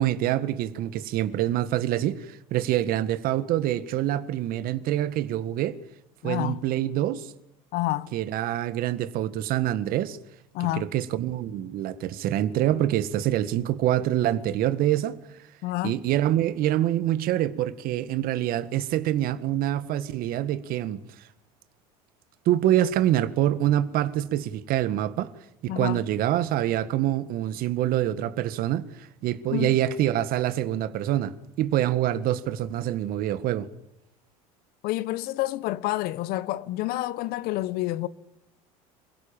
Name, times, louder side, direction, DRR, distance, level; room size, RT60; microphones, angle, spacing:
voice 1, 0.0-5.8 6.2-7.3 8.1-10.2 10.7-15.2 15.8-21.0 22.5-25.3 25.6-33.7, right 12 dB, 55° right, 1.8 m, -25 dB
voice 2, 6.2-6.6 7.7-8.1 10.5-10.9 15.6-16.0 25.7-26.0 29.5-29.8 34.8-38.1, left 16 dB, 60° left, 1.2 m, -28 dB
27.5 x 17.0 x 9.0 m
hypercardioid pair, 85°, 18 cm